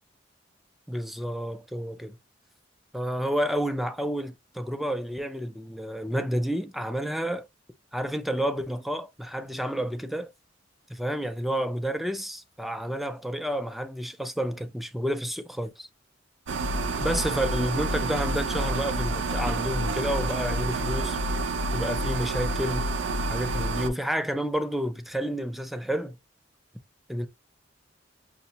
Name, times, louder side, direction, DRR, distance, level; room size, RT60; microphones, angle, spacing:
voice 1, 0.9-2.2 2.9-7.5 7.9-10.3 11.0-15.9 17.0-21.2 21.7-22.9 23.3-26.2 27.1-27.3, equal, ahead, 0.4 m, -30 dB
sound 1, 16.5-23.9, right 2 dB, 75° right, 0.5 m, -28 dB
5.8 x 2.0 x 2.8 m
head